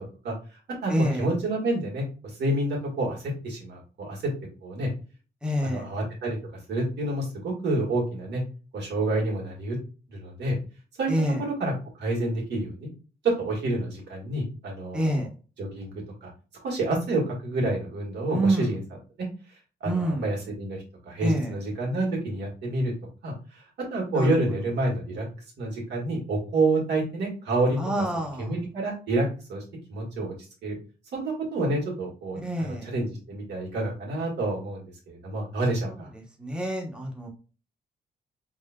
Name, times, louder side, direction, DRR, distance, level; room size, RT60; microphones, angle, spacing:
voice 1, 0.2-0.9 1.2-4.3 4.6-4.9 5.6-6.4 6.7-8.4 8.7-9.8 10.1-10.6 11.0-11.1 11.6-12.9 13.2-15.2 15.6-15.9 16.2-16.3 16.6-18.8 19.8-22.9 23.2-23.6 23.9-25.3 25.6-27.8 28.4-29.6 29.9-30.3 30.6-30.8 31.1-36.1, right 2 dB, 80° right, -2 dB, 1.8 m, -28 dB
voice 2, 0.9-1.3 5.4-5.9 11.1-11.4 14.9-15.3 18.3-18.7 19.8-20.3 21.2-21.5 24.1-24.3 27.8-28.5 32.4-32.9 35.8-37.3, right 1 dB, 5° right, 0 dB, 1.0 m, -27 dB
4.1 x 3.6 x 2.2 m, 0.35 s
cardioid pair, 110°, 17 cm